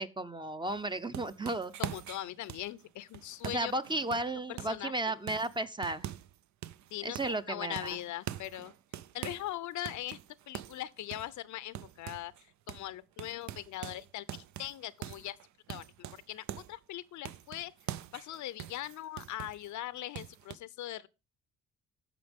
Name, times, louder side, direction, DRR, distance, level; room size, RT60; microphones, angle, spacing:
voice 1, 0.0-1.7 3.4-6.1 7.0-8.0, right 2 dB, 15° right, 0.6 m, -34 dB
sound 1, 0.7-4.9 5.3-6.4 6.6-7.4 7.8-9.5 9.8-12.4 12.7-12.9 13.2-16.8 17.2-19.7 20.1-20.6, right 12 dB, 65° right, 0.5 m, -44 dB
voice 2, 1.8-3.7 4.5-4.9 6.9-8.7 9.1-10.2 10.5-12.3 12.7-15.4 15.7-17.7 18.1-21.1, left 14 dB, 70° left, 0.6 m, -40 dB
14.0 x 5.1 x 3.5 m
cardioid pair, 90°, 30 cm